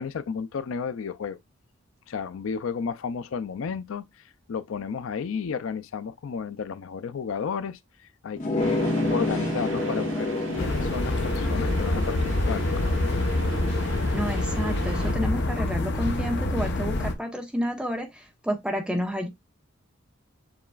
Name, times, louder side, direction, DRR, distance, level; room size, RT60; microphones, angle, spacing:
voice 1, 0.0-1.4 2.1-8.8 9.1-12.8, left 6 dB, 85° left, 0.4 m, -33 dB
sound 1, 8.4-13.6, left 2 dB, 40° left, 1.4 m, -30 dB
sound 2, 8.6-15.1, right 2 dB, 85° right, 1.3 m, -37 dB
sound 3, 10.6-17.1, left 2 dB, 60° left, 0.8 m, -26 dB
voice 2, 14.1-19.3, equal, 5° right, 1.1 m, -30 dB
6.9 x 3.0 x 2.3 m
head